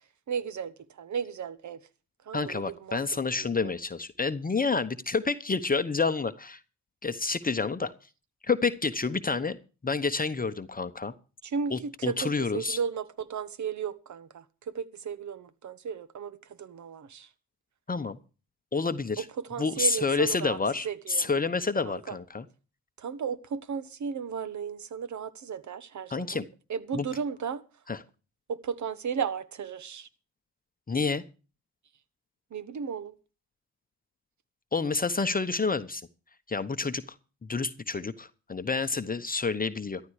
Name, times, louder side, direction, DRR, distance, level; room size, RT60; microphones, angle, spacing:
voice 1, 0.3-0.7 1.0-1.8 2.3-3.0 3.3-3.5 11.4-17.3 19.2-19.3 19.5-20.6 20.8-21.3 21.9-22.1 23.0-26.4 26.7-27.6 28.5-30.1 32.5-33.1, right 6 dB, 50° right, 1.3 m, -35 dB
voice 2, 2.3-6.6 7.0-7.9 8.4-9.6 9.8-11.1 11.7-12.8 17.9-18.2 18.7-19.3 19.6-22.5 26.1-26.4 26.9-27.1 27.9-28.0 30.9-31.2 34.7-36.0 36.5-37.0 37.5-40.0, left 4 dB, 25° left, 1.0 m, -29 dB
13.5 x 12.0 x 4.9 m
supercardioid pair, 65°, 38 cm